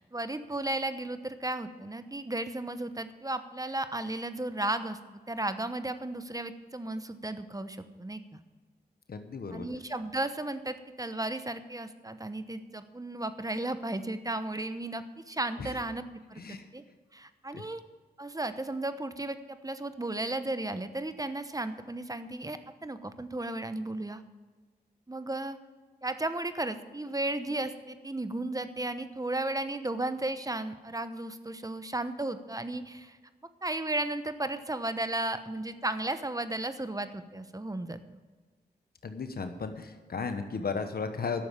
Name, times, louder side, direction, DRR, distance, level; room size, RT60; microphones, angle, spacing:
voice 1, 0.0-8.4 9.5-16.0 16.3-16.8 17.1-17.8 18.2-24.2 25.1-25.6 26.0-33.2 33.6-38.0, right 2 dB, 20° right, 11 dB, 1.0 m, -34 dB
voice 2, 9.1-9.7 15.6-15.8 16.4-16.7 17.5-17.6 39.0-41.4, left 5 dB, 65° left, 8 dB, 1.1 m, -35 dB
12.0 x 7.1 x 8.8 m, 1.4 s
cardioid pair, 45°, 17 cm